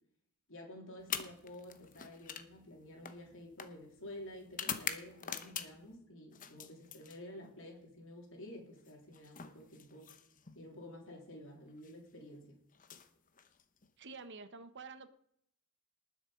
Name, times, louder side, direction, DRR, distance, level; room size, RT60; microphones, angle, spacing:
voice 1, 0.5-10.1 10.6-12.6, left 1 dB, 60° left, -1 dB, 3.6 m, -51 dB
sound 1, 1.0-5.9 6.3-7.6 8.8-10.6 11.7-11.9 12.7-13.9, left 8 dB, 35° left, 0.9 m, -45 dB
voice 2, 14.0-15.1, right 4 dB, 55° right, 11 dB, 1.0 m, -49 dB
19.5 x 7.2 x 5.1 m, 0.71 s
head